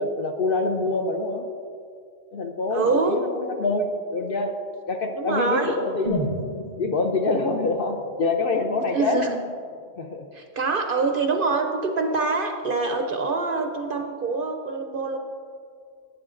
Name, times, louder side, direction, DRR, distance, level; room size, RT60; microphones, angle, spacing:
voice 1, 0.0-1.4 2.3-4.6 4.9-6.4 6.8-9.2 10.0-10.2, left 3 dB, 55° left, 4 dB, 0.7 m, -25 dB
voice 2, 2.7-3.3 5.2-5.8 8.9-9.4 10.3-15.2, right 4 dB, 60° right, 4 dB, 0.6 m, -25 dB
sound 1, 6.0-10.0 10.3-10.4, left 1 dB, 40° left, 2.3 m, -35 dB
11.5 x 9.7 x 2.5 m, 2.2 s
omnidirectional pair, 1.3 m